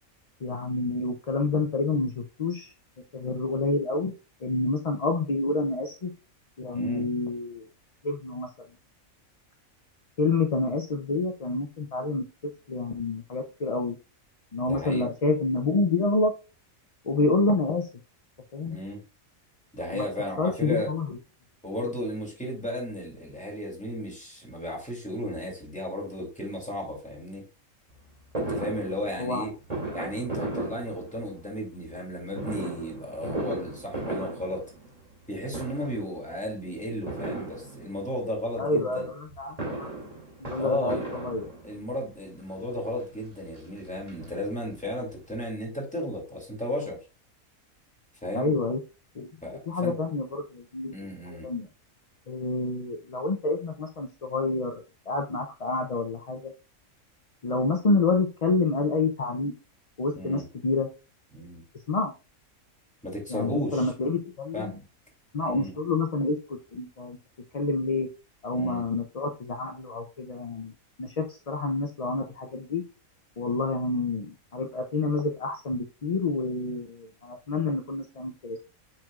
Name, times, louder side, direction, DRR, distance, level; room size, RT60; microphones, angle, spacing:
voice 1, 0.4-2.7 3.1-4.1 4.4-6.1 6.6-7.7 8.0-8.5 10.2-12.3 12.7-14.0 14.5-16.3 17.0-17.9 18.5-18.8 19.9-20.0 20.4-21.1 29.2-29.4 38.6-40.0 40.5-41.5 48.3-48.8 49.1-49.3 49.7-50.9 51.4-51.7 52.3-56.5 57.4-59.5 60.0-60.9 61.9-62.1 63.3-64.8 65.3-67.2 67.5-68.1 68.4-70.7 71.0-72.8 73.4-78.6, left 3 dB, 45° left, 4 dB, 0.5 m, -28 dB
voice 2, 14.7-15.1 18.7-19.0 19.7-20.9 21.6-27.4 28.4-29.5 29.9-34.6 35.3-39.1 40.6-41.1 41.6-47.0 48.2-48.5 49.4-50.0 50.9-51.5 60.2-60.4 61.3-61.6 63.0-63.9 64.5-64.8 65.4-65.7 68.5-68.9, left 1 dB, 5° left, -2 dB, 2.6 m, -34 dB
Fireworks, 28.3-31.5 32.3-35.2 35.5-36.1 37.1-38.1 39.3-41.9 42.7-42.8 43.1-43.2 43.5-44.8 45.1-45.2 45.4-45.5, right 2 dB, 25° right, 2.6 m, -35 dB
7.6 x 6.0 x 2.4 m, 0.29 s
omnidirectional pair, 1.5 m